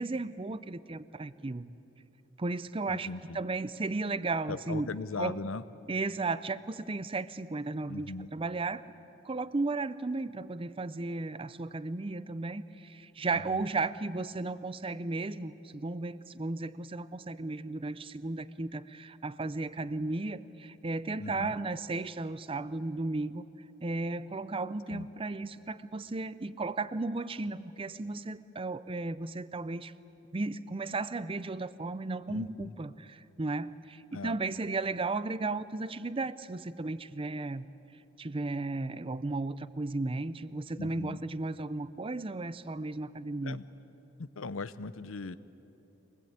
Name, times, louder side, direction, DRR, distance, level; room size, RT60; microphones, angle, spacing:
voice 1, 0.0-1.7 2.4-3.1 3.3-4.9 5.2-5.4 5.9-8.8 9.2-23.4 23.8-29.9 30.3-32.9 33.4-37.7 38.2-43.6, right 3 dB, 25° right, 16 dB, 0.5 m, -34 dB
voice 2, 2.9-3.4 4.5-5.6 7.9-8.3 13.3-13.7 21.2-21.6 24.9-25.1 32.3-32.8 34.1-34.4 40.8-41.2 43.4-43.6 44.2-45.4, left 4 dB, 90° left, 14 dB, 0.7 m, -39 dB
24.0 x 19.5 x 8.8 m, 3.0 s
head